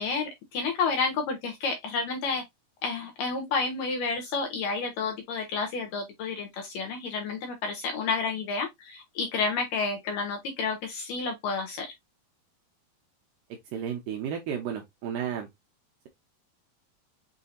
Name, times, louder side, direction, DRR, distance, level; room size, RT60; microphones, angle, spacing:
voice 1, 0.0-2.4 2.8-11.9, left 4 dB, 75° left, 2.1 m, -30 dB
voice 2, 13.7-15.5, right 8 dB, 75° right, 2.1 m, -32 dB
6.4 x 2.7 x 2.4 m
omnidirectional pair, 4.5 m